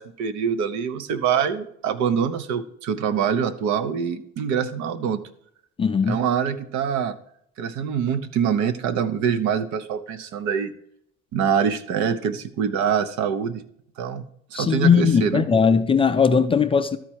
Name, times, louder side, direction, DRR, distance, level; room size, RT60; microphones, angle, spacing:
voice 1, 0.0-5.2 6.0-7.1 7.6-10.7 11.3-13.6 14.0-15.5, right 7 dB, 65° right, 0.9 m, -24 dB
voice 2, 5.8-6.2 14.5-17.0, left 6 dB, 20° left, 0.4 m, -19 dB
12.5 x 4.4 x 4.6 m
cardioid pair, 130°, 30 cm